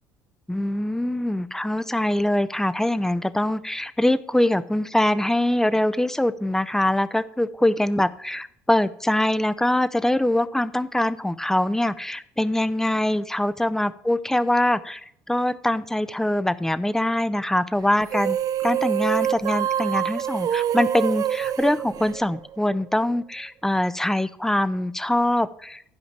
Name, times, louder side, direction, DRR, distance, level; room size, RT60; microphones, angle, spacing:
voice 1, 0.5-18.4 18.6-25.8, left 1 dB, 5° left, 14 dB, 0.7 m, -23 dB
sound 1, 18.0-22.7, right 11 dB, 45° right, 0.3 m, -26 dB
11.5 x 5.2 x 7.3 m, 0.71 s
hypercardioid pair, 60°, 9 cm